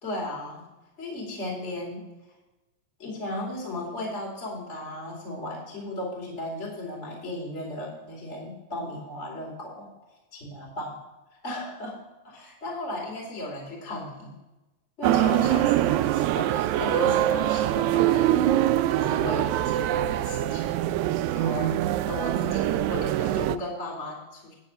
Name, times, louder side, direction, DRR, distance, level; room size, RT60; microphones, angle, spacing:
voice 1, 0.0-0.6 1.0-2.0 3.0-9.9 10.3-10.9 11.3-14.4 15.0-18.6 18.9-20.7 21.3-21.7 22.0-24.5, left 1 dB, 25° left, -2 dB, 2.8 m, -35 dB
sound 1, 15.0-23.6, right 13 dB, 80° right, 1.8 m, -24 dB
9.8 x 9.5 x 4.3 m, 1.1 s
omnidirectional pair, 3.5 m